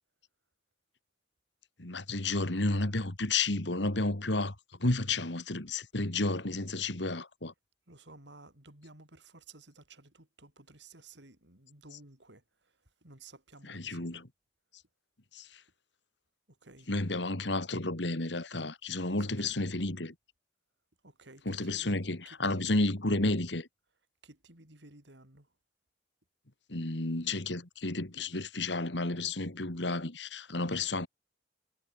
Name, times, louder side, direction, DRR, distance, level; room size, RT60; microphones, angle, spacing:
voice 1, 1.8-7.5 13.7-14.2 15.3-15.6 16.9-20.1 21.5-23.7 26.7-31.1, left 2 dB, 70° left, 2.6 m, -32 dB
voice 2, 7.9-14.2 16.5-16.9 19.1-19.3 21.0-21.9 22.3-23.2 24.2-25.5, right 2 dB, 70° right, 5.8 m, -55 dB
head